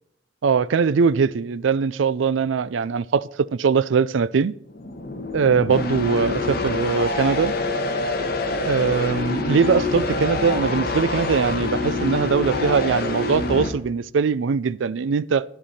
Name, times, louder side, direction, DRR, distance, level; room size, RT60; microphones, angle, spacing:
voice 1, 0.4-4.5 5.3-7.5 8.6-15.4, right 5 dB, 75° right, 0.4 m, -21 dB
sound 1, 4.7-13.7, left 2 dB, 50° left, 1.4 m, -26 dB
11.5 x 10.5 x 4.2 m
head